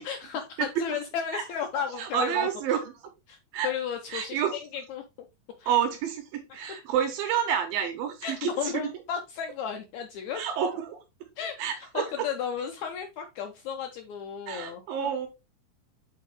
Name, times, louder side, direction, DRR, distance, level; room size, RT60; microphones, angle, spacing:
voice 1, 0.0-2.5 3.3-5.0 5.6-5.7 8.2-10.4 11.4-11.5 11.9-15.1, left 8 dB, 90° left, 5 dB, 1.6 m, -34 dB
voice 2, 0.6-1.0 1.3-1.4 1.7-2.9 3.5-3.7 4.1-4.6 5.7-8.8 10.3-11.0 11.6-12.3 14.5-15.3, right 8 dB, 80° right, 6 dB, 2.6 m, -29 dB
8.1 x 4.2 x 3.4 m, 0.25 s
omnidirectional pair, 4.2 m